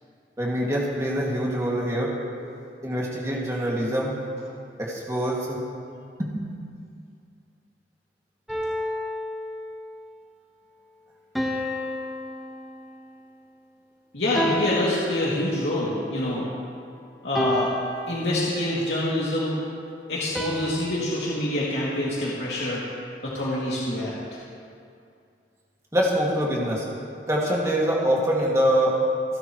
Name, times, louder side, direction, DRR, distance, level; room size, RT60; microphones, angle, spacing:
voice 1, 0.4-2.1 2.8-4.1 4.8-5.6 6.2-6.4 25.9-26.8 27.3-29.0, equal, 15° right, -4 dB, 2.3 m, -24 dB
sound 1, 8.5-10.0 11.3-13.2 14.3-15.8 17.3-18.8 20.3-22.6, left 1 dB, ahead, 1.2 m, -32 dB
voice 2, 14.1-16.4 17.2-17.7 18.1-19.6 20.1-22.8 23.2-24.1, left 1 dB, 80° left, -7 dB, 2.6 m, -26 dB
28.5 x 11.5 x 3.2 m, 2.4 s
head